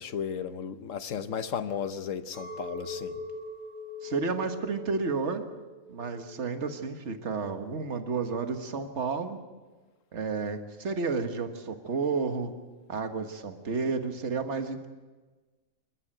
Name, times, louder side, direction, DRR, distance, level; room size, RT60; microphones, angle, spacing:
voice 1, 0.0-3.2, left 7 dB, 65° left, 1.3 m, -34 dB
Chink clink, 2.3-7.8, left 2 dB, 20° right, 4.9 m, -42 dB
voice 2, 4.0-5.4 5.9-9.4 10.1-12.5 12.9-14.9, right 4 dB, 55° right, 1.8 m, -31 dB
27.5 x 13.0 x 9.1 m
omnidirectional pair, 1.4 m